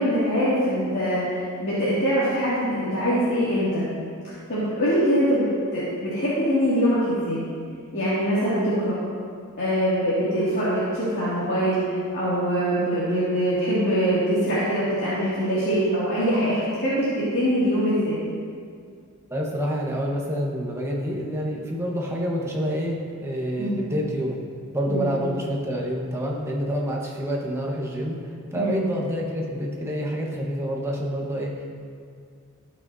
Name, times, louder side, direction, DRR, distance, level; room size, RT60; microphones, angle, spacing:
voice 1, 0.0-3.8 4.2-5.5 5.7-7.4 7.9-8.9 9.6-18.2 23.6-23.8 24.9-25.1 28.6-28.8, equal, 50° left, -12 dB, 2.3 m, -23 dB
voice 2, 19.3-24.4 24.7-31.6, equal, 10° right, -2 dB, 1.2 m, -28 dB
16.5 x 6.2 x 2.7 m, 2.2 s
head